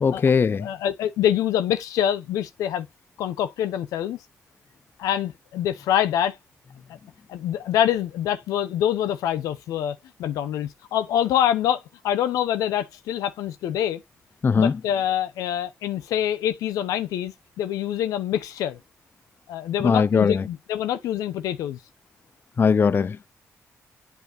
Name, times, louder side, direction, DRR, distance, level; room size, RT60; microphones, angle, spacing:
voice 1, 0.0-0.7 14.4-14.7 19.8-20.4 22.6-23.3, left 5 dB, 40° left, 0.4 m, -20 dB
voice 2, 0.6-2.9 3.2-4.2 5.0-6.4 7.3-14.0 14.6-18.8 19.5-21.8, left 10 dB, 90° left, 0.8 m, -25 dB
8.2 x 4.6 x 2.7 m
supercardioid pair, 60°, 6 cm